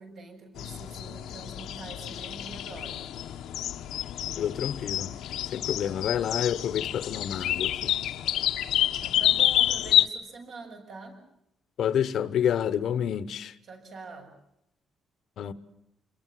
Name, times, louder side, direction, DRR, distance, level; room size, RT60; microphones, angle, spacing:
voice 1, 0.0-3.1 9.0-11.2 13.6-14.3, right 3 dB, 55° right, 7.7 m, -44 dB
sound 1, 0.6-10.1, left 12 dB, 85° left, 1.2 m, -28 dB
voice 2, 4.4-5.1 5.5-7.7 11.8-13.5 15.4-15.5, left 9 dB, 60° left, 1.2 m, -28 dB
28.5 x 22.5 x 7.6 m
cardioid pair, 160°, 0 cm